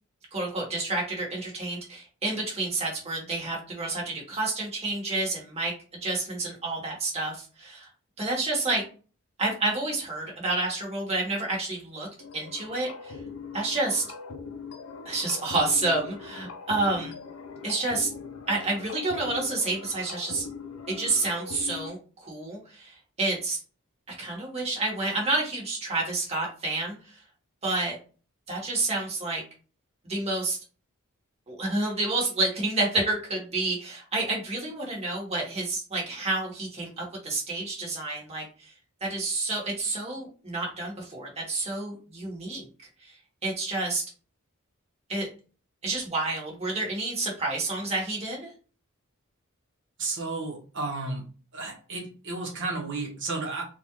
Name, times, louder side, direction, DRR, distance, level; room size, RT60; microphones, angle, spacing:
voice 1, 0.3-5.7 6.0-7.9 8.2-8.8 9.4-12.1 12.3-13.2 13.5-14.0 15.0-17.1 17.6-18.1 18.5-20.5 20.9-23.6 24.2-27.2 27.6-28.0 28.5-29.4 30.0-30.6 31.5-38.7 39.0-42.7 43.0-43.1 43.4-44.0 45.1-45.3 45.8-48.5, right 2 dB, 30° right, -3 dB, 1.4 m, -29 dB
sound 1, 12.2-21.9, left 4 dB, 80° left, 0.6 m, -41 dB
voice 2, 50.0-51.2 51.5-53.6, right 3 dB, 60° right, -1 dB, 1.1 m, -32 dB
3.8 x 2.4 x 3.0 m, 0.37 s
head